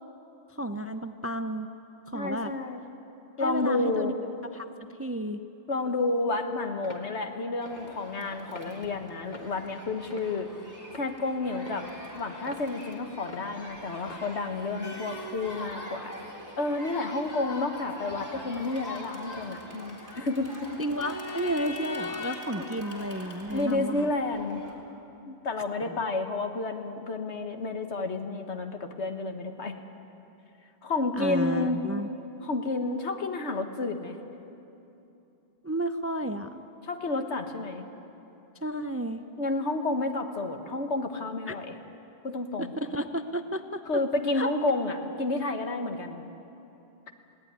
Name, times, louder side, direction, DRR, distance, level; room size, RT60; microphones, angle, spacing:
voice 1, 0.5-1.7 2.1-2.5 3.4-4.1 4.4-5.4 20.8-24.1 25.9-26.0 31.2-32.1 35.6-36.6 38.6-39.2 41.5-41.6 42.6-44.0 44.3-44.5, right 1 dB, 20° right, 9 dB, 0.4 m, -32 dB
voice 2, 2.1-2.9 3.4-4.1 5.7-10.5 11.0-11.9 12.1-16.1 16.6-20.7 22.5-22.7 23.5-24.6 25.3-29.8 30.8-31.8 32.4-34.1 36.8-37.8 39.4-41.7 42.2-42.7 43.9-46.2, left 3 dB, 80° left, 6 dB, 1.7 m, -30 dB
sound 1, 6.8-7.1 7.7-7.9 8.5-8.7 9.3-9.6 10.1-10.5 10.9-11.1 11.7-11.9 12.5-12.7 13.3-13.5 14.1-14.2, left 3 dB, 40° left, 1.7 m, -44 dB
Crowd, 7.6-24.7, left 1 dB, 15° left, 3.4 m, -42 dB
20.5 x 17.0 x 9.6 m, 2.9 s
omnidirectional pair, 1.1 m